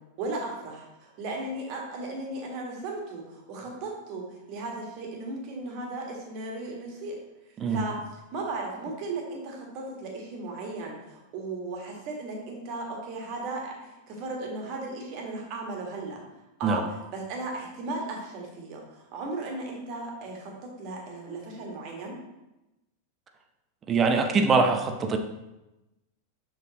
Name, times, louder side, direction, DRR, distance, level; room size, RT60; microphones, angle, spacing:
voice 1, 0.2-7.1 7.7-8.0 8.3-16.2 16.6-20.5 20.8-22.2, right 2 dB, 40° right, 0 dB, 1.8 m, -36 dB
voice 2, 23.9-25.2, right 4 dB, 25° right, 6 dB, 0.8 m, -23 dB
6.7 x 6.4 x 3.0 m, 0.97 s
figure-of-eight pair, 90°, 0 cm